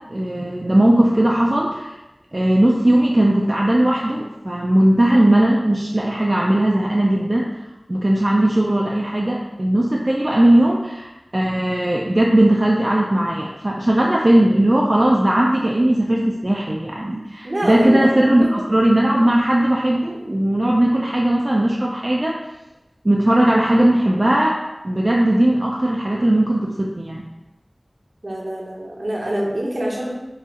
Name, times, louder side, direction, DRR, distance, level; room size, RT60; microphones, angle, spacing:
voice 1, 0.0-2.0 2.3-7.5 7.9-22.4 23.0-27.3, right 1 dB, 40° right, -2 dB, 0.4 m, -18 dB
voice 2, 17.4-18.1 18.4-18.5 28.2-30.1, right 1 dB, 65° right, -3 dB, 0.8 m, -24 dB
4.7 x 2.4 x 2.9 m, 1.0 s
wide cardioid pair, 50°, 0 cm